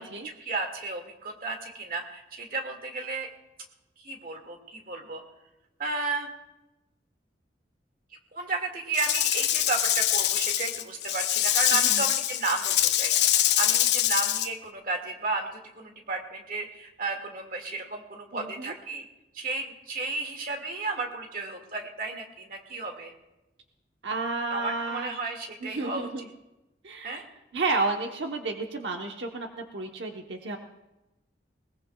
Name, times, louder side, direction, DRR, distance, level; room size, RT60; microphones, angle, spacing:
voice 1, 0.0-3.3 4.0-5.2 5.8-6.3 8.3-13.1 13.6-19.1 19.3-23.1 24.5-26.1 27.0-27.2, right 3 dB, 55° right, 3 dB, 2.0 m, -33 dB
Rattle / Rattle (instrument), 8.9-14.5, left 12 dB, 70° left, 0.7 m, -24 dB
voice 2, 11.7-12.0 18.3-18.7 24.0-25.1 25.6-26.3 26.8-27.2 27.5-30.6, right 3 dB, 90° right, 3 dB, 1.0 m, -31 dB
21.0 x 20.0 x 2.3 m, 0.97 s
head